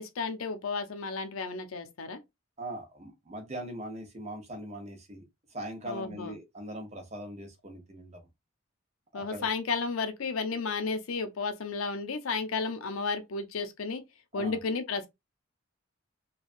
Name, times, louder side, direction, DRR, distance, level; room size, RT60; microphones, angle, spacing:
voice 1, 0.0-2.2 5.9-6.3 9.1-14.0 14.3-15.1, left 4 dB, 90° left, 0.6 m, -33 dB
voice 2, 2.6-5.2 5.5-8.2 9.1-9.5 14.3-14.6, right 1 dB, 35° right, 0.8 m, -41 dB
3.2 x 2.3 x 2.5 m
head